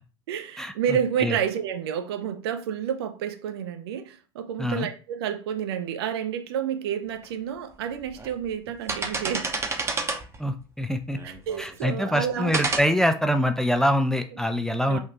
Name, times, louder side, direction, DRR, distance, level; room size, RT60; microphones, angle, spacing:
voice 1, 0.3-9.5 11.2-12.6 14.8-15.0, right 8 dB, 70° right, 0.6 m, -30 dB
sound 1, 7.2-7.3 8.0-8.3 8.7-10.4 11.1-11.9 12.5-12.8, right 3 dB, 20° right, 0.7 m, -29 dB
voice 2, 10.4-11.2 11.6-15.0, equal, 5° left, 0.4 m, -24 dB
3.7 x 2.4 x 2.8 m
figure-of-eight pair, 70°, 14 cm